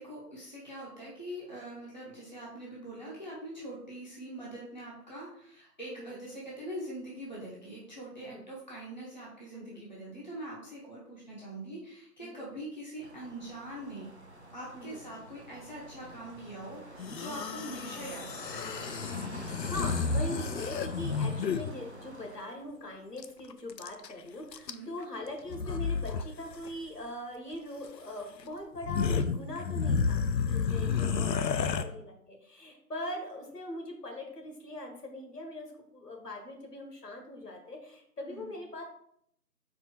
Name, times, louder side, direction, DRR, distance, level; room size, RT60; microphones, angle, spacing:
voice 1, 0.0-14.1 14.5-18.4 24.7-24.9 30.9-31.9 38.3-38.5, right 1 dB, 30° left, -5 dB, 0.7 m, -43 dB
voice 2, 9.5-9.8 12.2-12.4 14.7-15.0 17.7-17.9 19.3-38.8, left 1 dB, 70° left, 2 dB, 1.5 m, -42 dB
sound 1, 13.0-22.4, right 1 dB, 45° right, 0.5 m, -47 dB
sound 2, 17.0-21.7 23.2-23.3 23.5-24.1 24.5-25.0 25.5-26.3 26.5-26.7 27.8-27.9 28.4-28.5 28.8-31.8, left 5 dB, 90° left, 0.6 m, -31 dB
4.3 x 2.7 x 4.4 m, 0.70 s
figure-of-eight pair, 160°, 49 cm